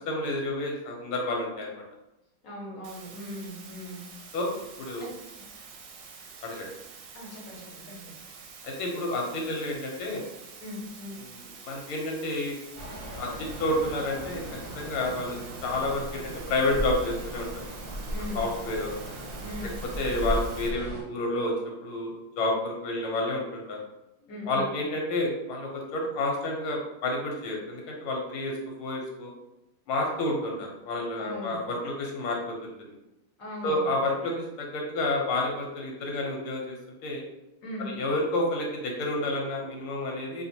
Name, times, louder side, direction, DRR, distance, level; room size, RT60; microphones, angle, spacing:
voice 1, 0.1-1.8 4.3-4.5 4.8-5.1 6.4-6.7 8.6-10.2 11.3-12.5 13.1-14.4 14.8-17.6 18.3-18.9 19.6-19.7 20.0-21.5 21.8-23.8 24.5-28.5 28.8-29.3 29.9-32.9 33.6-36.8 37.0-37.2 37.8-40.4, left 2 dB, 85° left, 0 dB, 1.7 m, -30 dB
voice 2, 2.4-4.0 5.0-5.1 7.1-8.2 10.6-11.2 18.1-18.5 19.4-19.7 24.2-24.7 31.2-31.6 33.4-33.8 37.6-37.9, left 1 dB, 45° left, -5 dB, 1.4 m, -39 dB
sound 1, 2.8-20.7, right 5 dB, 70° right, 1.1 m, -47 dB
sound 2, 12.7-21.0, right 1 dB, 40° right, 0.8 m, -36 dB
4.2 x 2.8 x 2.8 m, 0.91 s
omnidirectional pair, 2.3 m